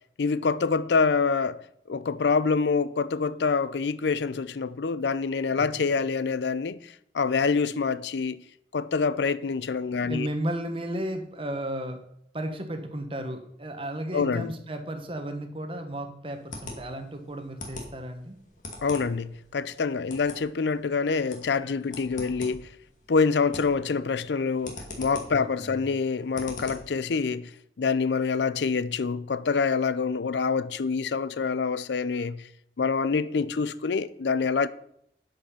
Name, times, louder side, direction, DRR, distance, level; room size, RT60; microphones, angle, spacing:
voice 1, 0.2-8.4 8.7-10.3 14.1-14.5 18.8-22.7 23.1-27.5 27.8-32.4 32.8-34.7, left 5 dB, 80° left, 0.5 m, -26 dB
voice 2, 9.9-12.0 12.3-18.4 20.1-20.2 25.3-25.8, right 1 dB, 30° right, 1.2 m, -34 dB
sound 1, 16.3-27.0, left 2 dB, 45° left, 2.1 m, -44 dB
11.5 x 5.4 x 5.6 m
head